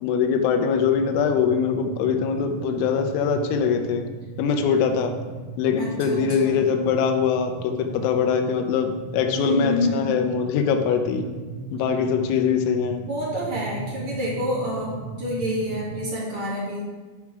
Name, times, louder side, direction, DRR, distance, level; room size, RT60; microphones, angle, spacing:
voice 1, 0.0-4.0 4.4-5.1 5.6-11.3 11.7-13.0, left 6 dB, 85° left, 5 dB, 3.5 m, -22 dB
sound 1, 0.7-16.0, right 4 dB, 30° left, 1.3 m, -37 dB
voice 2, 5.8-6.6 9.3-10.1 12.1-12.2 13.0-16.8, equal, 50° right, -6 dB, 1.7 m, -28 dB
11.5 x 4.8 x 6.0 m, 1.3 s
omnidirectional pair, 6.0 m